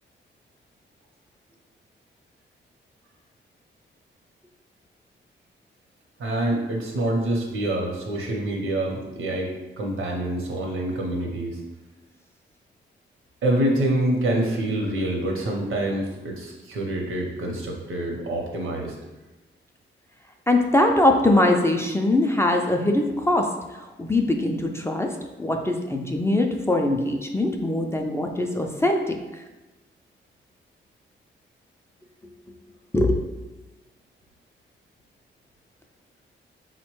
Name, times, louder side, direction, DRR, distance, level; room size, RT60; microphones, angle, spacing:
voice 1, 6.2-11.6 13.4-18.9, right 1 dB, 80° right, 0 dB, 0.7 m, -26 dB
voice 2, 20.5-23.5 24.0-29.2 32.9-33.2, left 1 dB, 15° left, 2 dB, 0.3 m, -22 dB
4.0 x 2.1 x 3.0 m, 1.1 s
cardioid pair, 75°, 21 cm